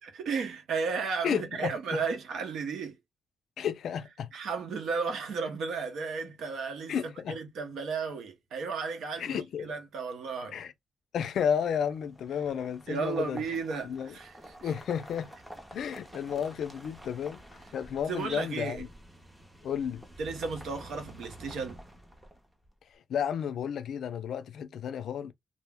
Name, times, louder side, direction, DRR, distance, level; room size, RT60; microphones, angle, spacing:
voice 1, 0.0-3.0 4.3-10.6 12.9-14.7 18.1-18.8 20.2-21.8, right 5 dB, 75° right, 0.8 m, -34 dB
voice 2, 1.2-2.0 3.6-4.3 6.9-7.4 9.2-9.7 10.5-10.7 11.1-13.4 13.8-14.1 14.6-15.3 15.7-18.9 19.6-20.0 23.1-25.3, left 8 dB, 65° left, 0.4 m, -32 dB
sound 1, 11.8-22.7, right 1 dB, 5° right, 0.6 m, -49 dB
2.5 x 2.1 x 3.4 m
cardioid pair, 145°, 0 cm